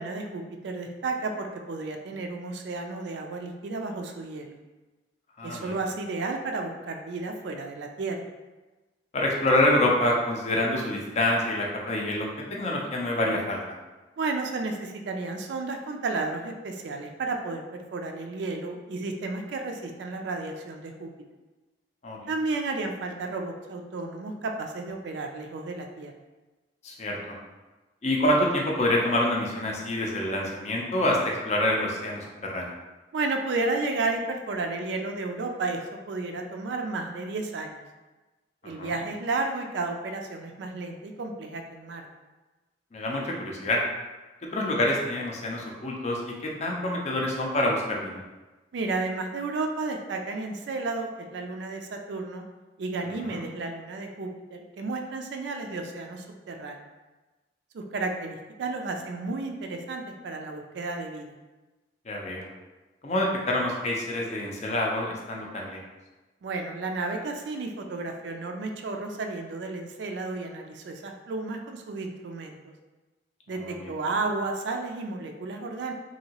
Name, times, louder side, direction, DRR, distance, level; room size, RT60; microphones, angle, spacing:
voice 1, 0.0-4.6 5.4-8.2 14.2-17.6 17.9-21.1 22.3-26.1 33.1-35.8 36.1-37.8 38.6-42.1 48.7-52.4 52.8-56.8 57.7-61.3 66.4-72.7 73.5-75.9, right 3 dB, 65° right, 3 dB, 0.3 m, -32 dB
voice 2, 5.4-5.8 9.1-13.6 22.0-22.3 26.8-27.4 28.0-32.7 38.6-39.0 42.9-43.8 44.5-48.2 53.2-53.4 62.1-62.5 63.0-65.8 73.6-73.9, left 1 dB, 35° left, -1 dB, 0.5 m, -27 dB
2.9 x 2.7 x 2.8 m, 1.2 s
head